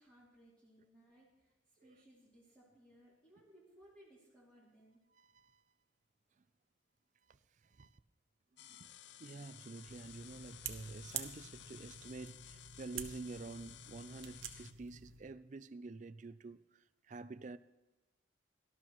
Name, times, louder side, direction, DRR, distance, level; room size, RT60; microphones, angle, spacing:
voice 1, 0.0-5.0, right 1 dB, 5° left, 2.9 m, -64 dB
voice 2, 5.1-5.6 7.3-8.0 8.6-8.9 9.2-17.6, right 3 dB, 40° right, 0.4 m, -49 dB
sound 1, 8.6-14.7, left 12 dB, 55° left, 0.4 m, -56 dB
sound 2, 9.9-15.2, right 8 dB, 75° right, 0.9 m, -48 dB
17.5 x 12.5 x 3.1 m
head